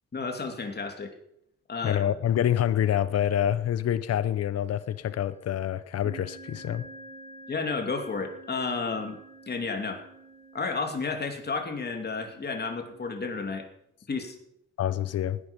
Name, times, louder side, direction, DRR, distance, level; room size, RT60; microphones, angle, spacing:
voice 1, 0.1-1.1 1.7-2.0 7.5-9.2 9.5-10.0 10.5-13.6 14.1-14.3, left 4 dB, 35° left, 2.8 m, -32 dB
voice 2, 1.8-6.8 14.8-15.4, left 10 dB, 55° left, 0.9 m, -26 dB
sound 1, 4.7-5.2 6.0-13.1, right 2 dB, 15° right, 3.4 m, -49 dB
17.0 x 10.0 x 5.3 m
cardioid pair, 90°, 30 cm